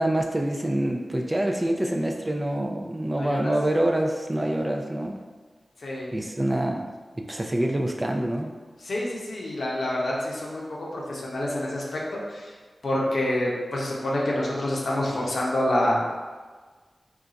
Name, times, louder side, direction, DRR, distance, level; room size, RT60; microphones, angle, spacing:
voice 1, 0.0-5.2 6.1-8.5, right 1 dB, 25° right, 2 dB, 0.3 m, -26 dB
voice 2, 3.2-3.5 5.8-6.1 8.8-12.5 12.8-16.0, left 1 dB, 80° left, -4 dB, 0.7 m, -27 dB
2.4 x 2.3 x 3.9 m, 1.4 s
cardioid pair, 45°, 0 cm